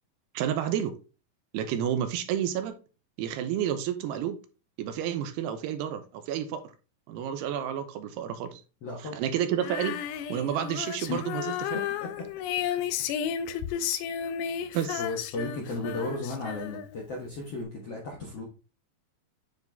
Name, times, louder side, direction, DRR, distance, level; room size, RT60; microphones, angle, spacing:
voice 1, 0.3-0.9 1.5-2.8 3.2-4.4 4.8-6.7 7.1-8.6 9.2-10.0 10.3-11.8 14.7-15.0, right 10 dB, 80° right, 2.8 m, -30 dB
voice 2, 8.8-9.2 11.1-11.3 11.7-12.2 14.4-14.6 15.0-18.4, left 2 dB, 65° left, 1.5 m, -35 dB
Female singing, 9.6-17.1, left 9 dB, 90° left, 2.8 m, -33 dB
9.6 x 4.0 x 3.5 m
omnidirectional pair, 4.8 m